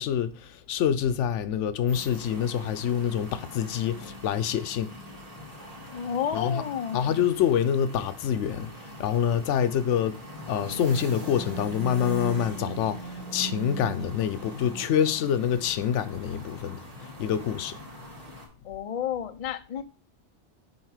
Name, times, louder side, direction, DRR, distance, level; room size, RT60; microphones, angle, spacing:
voice 1, 0.0-4.9 6.3-6.6 6.9-8.7 9.0-10.2 10.5-16.8 17.2-17.8, left 8 dB, 90° left, 0.9 m, -26 dB
sound 1, 1.9-18.5, right 1 dB, 35° right, 1.9 m, -41 dB
voice 2, 5.9-7.0 18.6-19.8, left 8 dB, 45° left, 0.5 m, -31 dB
7.2 x 3.7 x 4.8 m
omnidirectional pair, 1.2 m